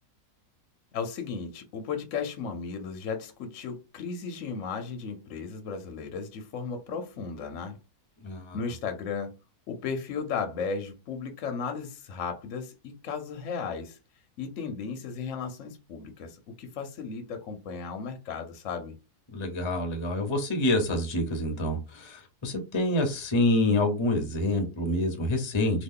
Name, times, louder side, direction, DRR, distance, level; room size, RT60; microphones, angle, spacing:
voice 1, 0.9-7.8 8.5-9.3 9.7-14.0 14.4-18.9, left 5 dB, 65° left, 0.8 m, -35 dB
voice 2, 8.2-8.6 19.3-25.8, left 1 dB, 35° left, 0.4 m, -27 dB
2.9 x 2.3 x 3.6 m
omnidirectional pair, 1.7 m